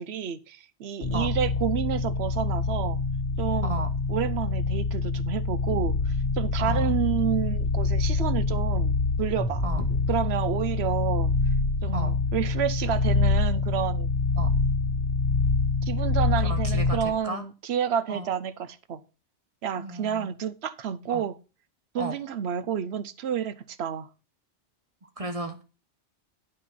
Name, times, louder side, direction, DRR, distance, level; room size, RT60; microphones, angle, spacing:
voice 1, 0.0-3.0 3.4-3.8 4.1-9.6 10.1-11.3 11.8-14.1 15.9-19.0 19.6-21.3 21.9-24.1, right 8 dB, 70° right, 0.9 m, -30 dB
sound 1, 1.0-17.2, left 3 dB, 75° left, 1.8 m, -26 dB
voice 2, 6.6-6.9 9.6-9.8 11.9-12.2 14.4-14.5 16.4-17.4 18.1-18.3 19.7-20.3 21.1-21.2 22.0-22.1 25.0-25.6, right 2 dB, 35° right, 1.0 m, -34 dB
9.1 x 4.4 x 5.7 m
omnidirectional pair, 1.2 m